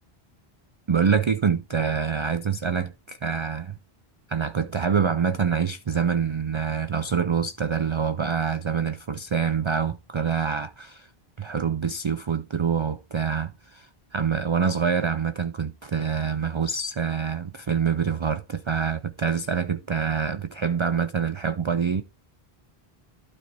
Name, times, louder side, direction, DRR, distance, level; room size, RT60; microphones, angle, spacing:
voice 1, 0.9-3.8 4.3-11.1 11.4-22.0, right 6 dB, 45° right, 0.4 m, -26 dB
12.0 x 4.2 x 4.6 m
omnidirectional pair, 1.0 m